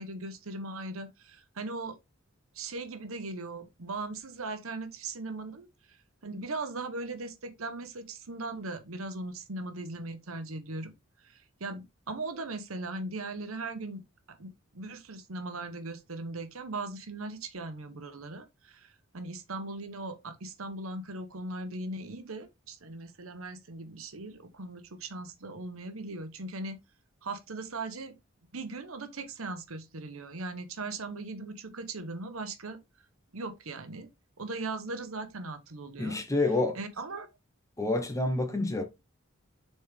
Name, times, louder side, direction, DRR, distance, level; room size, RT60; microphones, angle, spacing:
voice 1, 0.0-2.0 2.5-6.0 6.2-10.9 11.2-14.0 14.3-26.8 27.2-28.2 28.4-32.8 33.3-34.1 34.4-36.2 36.7-37.3, right 2 dB, 80° right, 1.1 m, -39 dB
voice 2, 36.0-36.8 37.8-38.8, left 2 dB, 15° left, 1.1 m, -28 dB
6.7 x 4.4 x 3.5 m
head